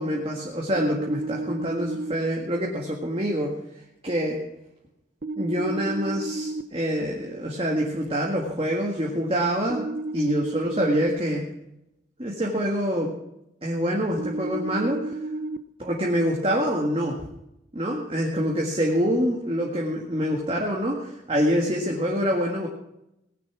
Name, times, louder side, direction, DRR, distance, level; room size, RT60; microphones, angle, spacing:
voice 1, 0.0-3.5 4.0-4.4 5.4-9.9 10.1-11.4 12.2-13.1 13.6-15.2 15.8-17.2 17.7-22.7, equal, 30° right, -1 dB, 1.8 m, -26 dB
sound 1, 0.8-2.1 5.2-6.6 9.7-11.1 14.2-15.6, right 2 dB, 50° right, 0.6 m, -31 dB
18.5 x 9.5 x 6.2 m, 0.85 s
head